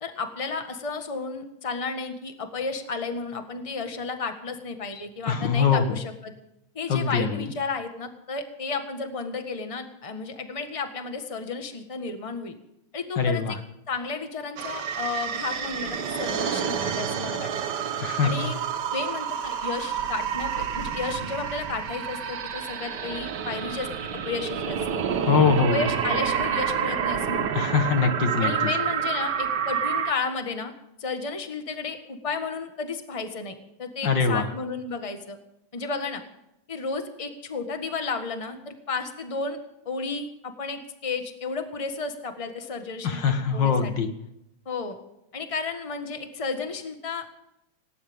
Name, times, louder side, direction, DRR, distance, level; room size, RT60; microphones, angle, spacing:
voice 1, 0.0-6.3 6.7-12.5 12.9-13.6 13.9-17.5 18.2-18.6 18.9-24.8 25.6-27.5 28.4-30.7 31.0-35.4 35.7-36.2 36.7-39.6 39.8-43.9 44.6-45.0 45.3-47.3, left 4 dB, 15° left, 6 dB, 1.5 m, -33 dB
voice 2, 5.3-6.0 6.9-7.4 13.2-13.6 18.0-18.3 25.3-25.8 27.5-28.5 34.0-34.5 43.0-44.1, left 5 dB, 60° left, 7 dB, 2.0 m, -23 dB
sound 1, 14.6-30.1, right 8 dB, 60° right, 1.5 m, -29 dB
18.5 x 18.5 x 3.7 m, 0.83 s
omnidirectional pair, 2.3 m